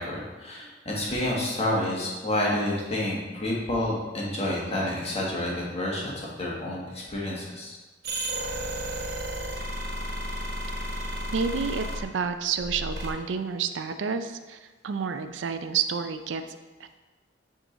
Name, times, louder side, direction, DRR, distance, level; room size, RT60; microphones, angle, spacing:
voice 1, 0.0-7.8, left 1 dB, 35° left, -4 dB, 1.5 m, -29 dB
sound 1, 8.0-12.0 12.5-13.1, right 1 dB, 60° right, 1.0 m, -32 dB
voice 2, 11.3-16.9, right 6 dB, 85° right, 9 dB, 0.4 m, -30 dB
8.1 x 3.7 x 3.8 m, 1.2 s
head